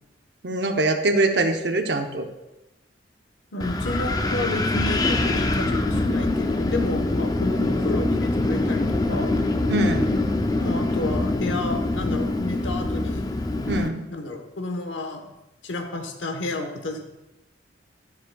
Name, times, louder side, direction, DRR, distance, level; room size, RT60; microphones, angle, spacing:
voice 1, 0.4-2.3 9.7-10.2 13.7-14.0, right 2 dB, 65° right, 5 dB, 0.8 m, -23 dB
voice 2, 3.5-9.3 10.6-13.3 14.1-15.3 15.6-17.0, left 2 dB, 90° left, 5 dB, 1.1 m, -31 dB
Wind, 3.6-13.9, left 2 dB, 20° left, 0.4 m, -24 dB
12.0 x 7.1 x 2.3 m, 0.98 s
head